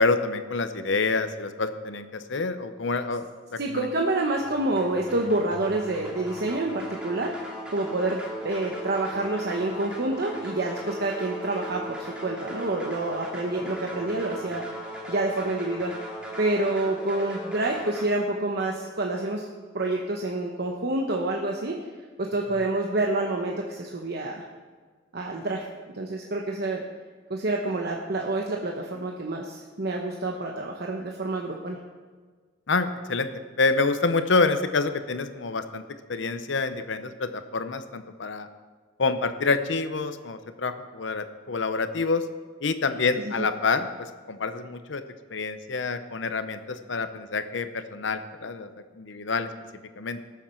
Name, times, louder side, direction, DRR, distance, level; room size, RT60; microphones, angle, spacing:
voice 1, 0.0-3.2 3.5-3.9 32.7-33.3 33.6-35.8 36.1-38.5 39.0-42.2 42.6-43.9 44.3-45.0 45.3-48.7 49.0-49.5 50.0-50.2, left 4 dB, 70° left, 10 dB, 0.8 m, -27 dB
voice 2, 3.6-7.3 7.7-16.1 16.4-19.4 19.7-21.8 22.2-24.4 25.1-25.7 25.9-26.8 27.3-31.8 43.2-43.5, right 2 dB, 55° right, 0 dB, 0.9 m, -28 dB
sound 1, 4.3-18.0, equal, 5° right, 2.1 m, -38 dB
18.0 x 7.2 x 4.4 m, 1.5 s
head